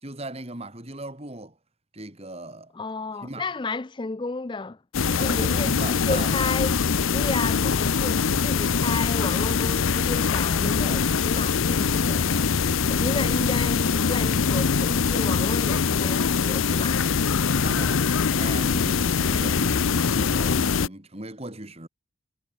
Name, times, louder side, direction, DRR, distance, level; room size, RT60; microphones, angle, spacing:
voice 1, 0.0-1.6 1.9-2.7 3.2-3.5 5.2-6.3 17.5-21.9, right 2 dB, 30° right, 2.8 m, -38 dB
voice 2, 2.7-4.8 5.1-6.8 7.1-12.5 12.9-17.0, left 3 dB, 25° left, 0.5 m, -32 dB
sound 1, 4.9-20.9, left 5 dB, 75° left, 0.7 m, -23 dB
head